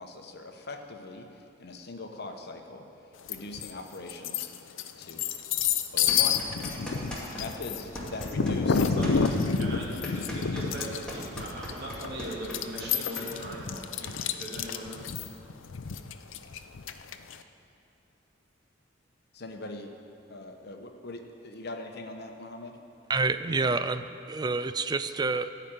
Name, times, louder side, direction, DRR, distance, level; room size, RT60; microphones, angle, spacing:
voice 1, 0.0-2.8 3.3-4.5 5.0-5.3 5.9-6.5 7.3-8.8 19.3-19.9 20.3-22.8, left 2 dB, 55° left, 4 dB, 1.0 m, -41 dB
sound 1, 3.3-3.7 4.1-17.4, left 6 dB, 75° left, 0.5 m, -29 dB
sound 2, 6.1-7.4 7.7-13.3, equal, 5° left, 2.3 m, -39 dB
voice 2, 9.6-15.0, right 1 dB, 55° right, -5 dB, 2.8 m, -40 dB
voice 3, 23.1-25.5, right 3 dB, 20° right, 12 dB, 0.3 m, -28 dB
15.0 x 5.1 x 9.1 m, 2.7 s
head